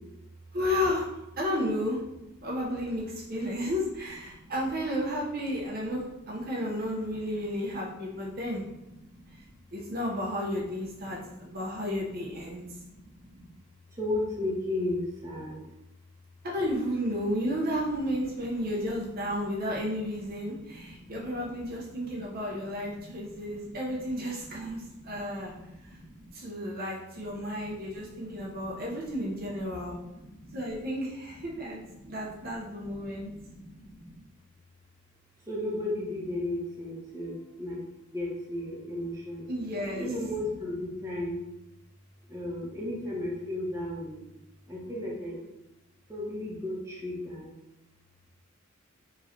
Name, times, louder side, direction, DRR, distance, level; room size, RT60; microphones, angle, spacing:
voice 1, 0.5-1.1 1.4-2.0 2.4-8.6 9.7-12.6 16.5-25.5 26.3-30.0 30.5-33.3 39.5-40.1, equal, 45° right, -3 dB, 0.7 m, -32 dB
voice 2, 7.3-9.5 11.0-11.8 12.5-13.5 13.9-15.6 18.2-18.3 18.6-18.9 19.2-21.7 22.0-26.3 27.1-30.8 31.4-34.2 35.5-37.8 38.1-39.4 39.9-41.4 42.3-44.2 44.7-45.4 46.1-47.5, left 1 dB, 15° right, -5 dB, 0.9 m, -37 dB
4.9 x 3.1 x 2.7 m, 0.91 s
head